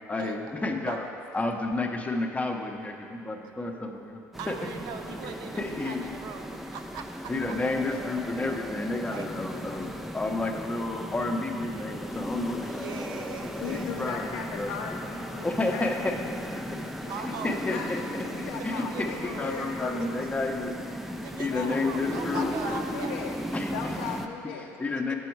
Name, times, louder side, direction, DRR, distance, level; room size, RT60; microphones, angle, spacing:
voice 1, 0.1-1.1 1.3-4.6 5.6-6.1 7.3-14.7 15.4-16.9 17.2-18.0 18.6-22.5 23.5-24.0 24.6-25.1, left 2 dB, 15° left, 3 dB, 0.8 m, -31 dB
sound 1, 4.3-24.3, equal, ahead, 0.5 m, -36 dB
voice 2, 4.4-7.1 9.1-9.3 12.6-14.1 17.1-17.6 18.6-19.6 21.2-23.2 24.1-24.2, right 7 dB, 60° right, 6 dB, 0.6 m, -40 dB
voice 3, 13.6-15.9 17.0-17.9 18.3-20.1 21.5-21.8 22.3-23.3 23.7-24.7, left 6 dB, 75° left, 0 dB, 0.6 m, -37 dB
7.0 x 6.8 x 4.6 m, 2.6 s
hypercardioid pair, 75°, 8 cm